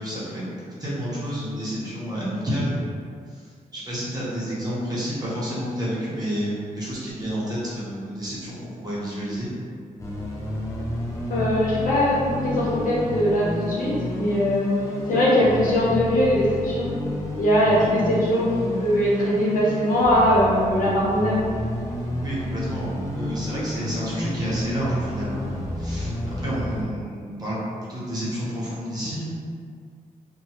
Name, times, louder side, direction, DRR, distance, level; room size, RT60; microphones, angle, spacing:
voice 1, 0.0-2.8 3.3-3.5 3.7-9.5 17.8-17.9 22.2-27.6 27.9-29.3, equal, 25° right, -9 dB, 0.9 m, -30 dB
sound 1, 10.0-26.8, left 1 dB, 20° left, 0.5 m, -30 dB
voice 2, 11.3-14.7 15.1-16.9 17.4-21.4, equal, 75° left, -7 dB, 0.8 m, -21 dB
2.9 x 2.2 x 2.9 m, 2.2 s
wide cardioid pair, 130°, 14 cm